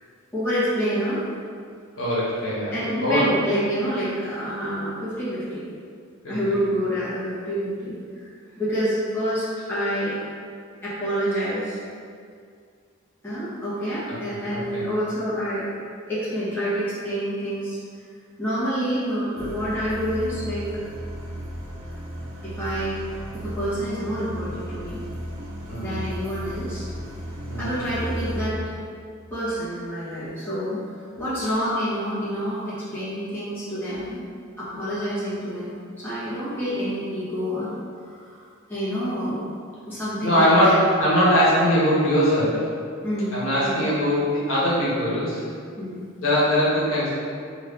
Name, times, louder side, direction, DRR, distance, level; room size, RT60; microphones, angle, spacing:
voice 1, 0.3-1.3 2.7-5.6 6.3-8.3 8.6-10.2 10.8-11.8 13.2-15.7 16.1-17.8 18.4-20.7 22.4-23.0 23.3-25.0 25.8-26.9 27.6-28.6 29.3-30.8 31.2-34.2 34.6-37.7 38.0-38.4 38.7-39.5 39.9-40.8 43.0-43.8 45.8-46.0, equal, 10° left, -12 dB, 1.0 m, -27 dB
voice 2, 2.0-2.7 3.0-3.3 6.2-6.3 14.5-14.9 25.7-26.0 27.5-27.8 40.2-42.6 43.3-45.5 46.2-47.1, equal, 70° left, -8 dB, 1.0 m, -21 dB
sound 1, 19.4-28.5, equal, 65° right, 0.5 m, -34 dB
2.8 x 2.7 x 3.4 m, 2.2 s
head